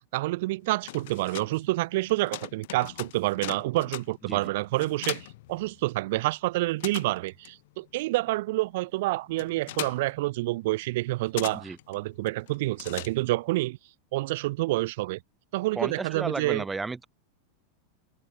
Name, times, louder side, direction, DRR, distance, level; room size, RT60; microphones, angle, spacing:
voice 1, 0.1-13.8 14.1-15.2 15.5-16.6, right 19 dB, 50° right, 2.3 m, -28 dB
sound 1, 0.6-6.2 6.5-13.6, left 17 dB, 55° left, 4.6 m, -41 dB
voice 2, 15.8-17.1, right 3 dB, 10° right, 5.4 m, -33 dB
figure-of-eight pair, 90°, 0 cm